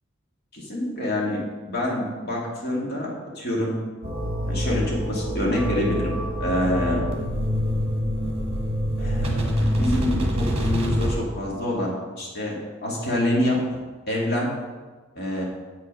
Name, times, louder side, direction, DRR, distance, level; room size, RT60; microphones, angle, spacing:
voice 1, 0.5-3.1 3.4-3.8 4.5-6.2 6.4-7.0 9.0-13.6 14.1-14.5 15.2-15.4, left 1 dB, 55° left, -3 dB, 2.1 m, -26 dB
sound 1, 4.0-11.2, equal, 30° right, 1.3 m, -26 dB
8.3 x 5.7 x 5.2 m, 1.4 s
head